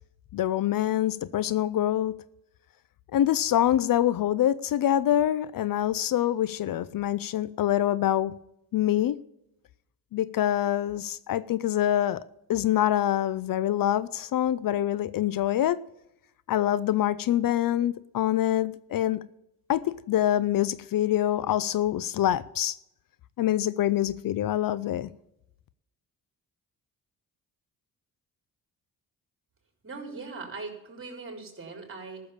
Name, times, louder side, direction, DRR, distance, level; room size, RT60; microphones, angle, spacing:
voice 1, 0.3-2.1 3.1-8.3 8.7-9.2 10.1-12.2 12.5-15.8 16.5-19.2 19.7-22.8 23.4-25.1, left 12 dB, 60° left, 0.6 m, -25 dB
voice 2, 29.8-32.2, right 4 dB, 35° right, 4.2 m, -40 dB
14.0 x 7.0 x 7.2 m
cardioid pair, 75°, 38 cm